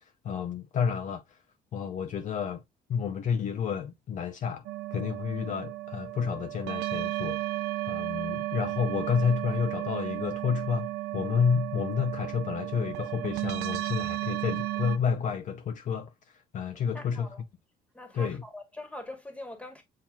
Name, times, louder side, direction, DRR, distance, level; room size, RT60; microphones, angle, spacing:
voice 1, 0.2-1.4 1.7-2.6 2.9-4.6 4.9-7.5 7.9-17.3 18.1-18.4, left 6 dB, 50° left, 0.6 m, -30 dB
sound 1, 4.6-15.0, right 17 dB, 85° right, 0.5 m, -34 dB
voice 2, 16.9-17.4 17.9-19.8, left 1 dB, 5° left, 1.4 m, -43 dB
7.4 x 2.9 x 2.3 m
cardioid pair, 110°, 17 cm